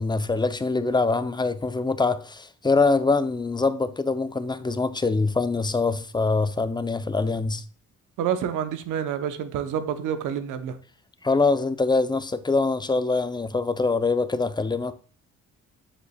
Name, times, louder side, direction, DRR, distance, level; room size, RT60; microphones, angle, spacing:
voice 1, 0.0-7.6 11.2-14.9, left 3 dB, 15° left, 0.6 m, -24 dB
voice 2, 8.2-10.8, right 8 dB, 85° right, 0.9 m, -28 dB
7.4 x 6.8 x 2.3 m
cardioid pair, 90°, 30 cm